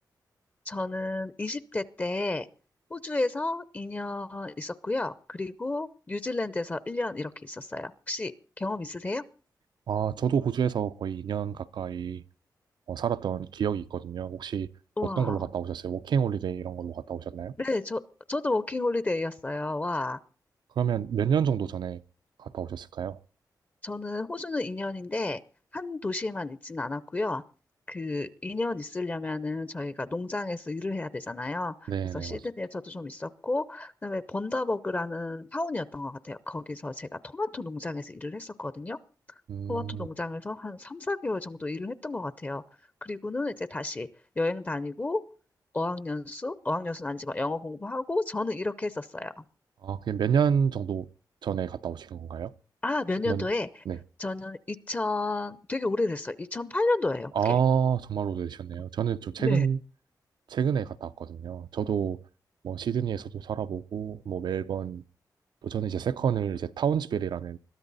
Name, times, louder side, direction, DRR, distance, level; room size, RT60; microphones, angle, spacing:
voice 1, 0.7-2.5 2.9-8.3 8.6-9.2 15.0-15.4 17.6-18.0 18.3-20.2 23.8-25.4 25.7-27.4 27.9-39.0 39.7-42.6 43.0-44.1 44.4-45.2 45.7-49.4 52.8-53.7 54.2-57.6 59.4-59.7, left 2 dB, 25° left, 0.7 m, -32 dB
voice 2, 9.9-12.2 12.9-14.7 15.0-17.5 20.8-22.0 22.4-23.2 31.9-32.4 39.5-40.1 49.8-51.1 51.4-52.5 53.2-53.5 53.9-54.0 57.3-59.8 60.5-62.2 62.6-65.0 65.6-67.6, right 7 dB, 85° right, 0.7 m, -29 dB
21.5 x 13.5 x 4.1 m
wide cardioid pair, 130°, 7 cm